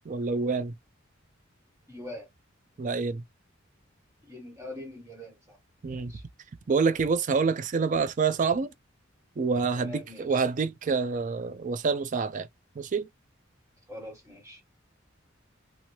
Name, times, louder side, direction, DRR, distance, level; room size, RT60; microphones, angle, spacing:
voice 1, 0.1-0.7 2.8-3.2 5.8-6.1 6.7-8.7 9.4-12.5 12.8-13.1, right 5 dB, 40° right, 0.4 m, -27 dB
voice 2, 1.9-2.3 4.2-5.6 5.8-6.2 9.7-10.4 13.9-14.6, left 1 dB, 15° right, 1.5 m, -43 dB
2.8 x 2.6 x 3.0 m
head